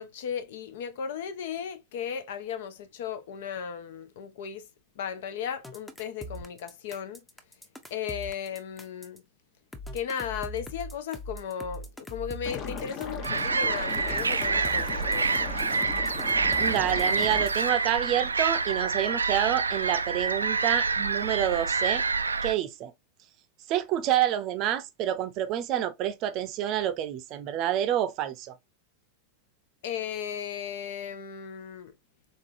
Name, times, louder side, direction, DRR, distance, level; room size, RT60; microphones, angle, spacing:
voice 1, 0.0-4.7 5.0-7.2 7.9-9.2 9.9-15.5 29.8-31.9, left 8 dB, 55° left, 0.7 m, -36 dB
sound 1, 5.6-9.2 9.7-13.4 13.9-17.7, equal, 5° left, 0.7 m, -41 dB
Liquid, 12.4-17.4, left 6 dB, 35° left, 1.0 m, -39 dB
sound 2, 13.2-22.5, right 4 dB, 75° right, 0.3 m, -27 dB
voice 2, 16.6-22.0 22.4-22.9 23.7-28.6, right 11 dB, 40° right, 0.6 m, -28 dB
3.9 x 3.7 x 2.6 m
figure-of-eight pair, 90°, 0 cm